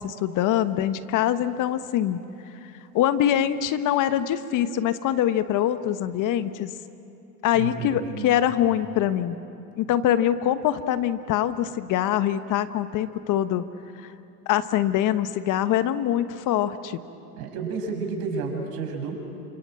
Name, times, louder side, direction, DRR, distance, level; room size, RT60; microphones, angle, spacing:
voice 1, 0.0-2.2 2.6-6.7 7.4-9.4 9.8-13.6 14.0-14.1 14.5-17.0, left 11 dB, 40° left, 12 dB, 1.2 m, -24 dB
voice 2, 7.5-8.4 17.4-19.1, right 4 dB, 60° right, 4 dB, 6.2 m, -31 dB
29.0 x 26.0 x 7.8 m, 3.0 s
hypercardioid pair, 95°, 47 cm